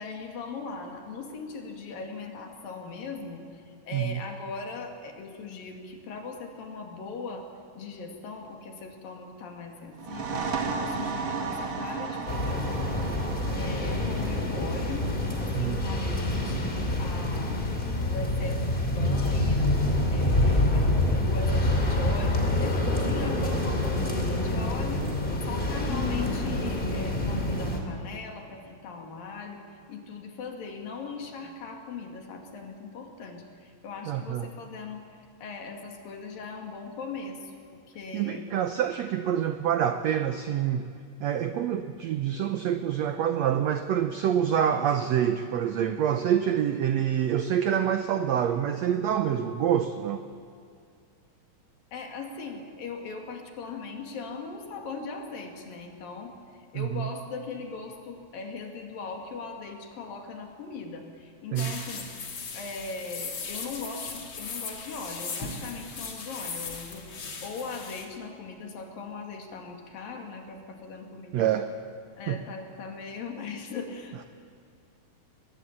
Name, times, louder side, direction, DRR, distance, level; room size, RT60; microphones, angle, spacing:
voice 1, 0.0-7.5 7.8-13.1 13.6-15.1 15.4-16.7 17.0-19.7 20.1-25.1 25.5-35.0 35.4-38.5 51.9-56.3 56.7-62.1 62.5-67.1 67.4-71.5 72.2-74.3, left 4 dB, 75° left, 3 dB, 4.1 m, -39 dB
sound 1, 9.9-17.3, right 4 dB, 45° right, 2.5 m, -35 dB
sound 2, 12.3-27.8, left 1 dB, 15° left, 2.6 m, -27 dB
voice 2, 34.1-34.5 38.1-40.9 41.2-50.2 56.7-57.1 61.5-61.8 71.3-71.7 72.3-72.4, right 9 dB, 80° right, 8 dB, 1.5 m, -26 dB
sound 3, 61.6-68.1, left 4 dB, 45° left, 3.3 m, -38 dB
23.0 x 21.0 x 8.7 m, 2.3 s
omnidirectional pair, 4.1 m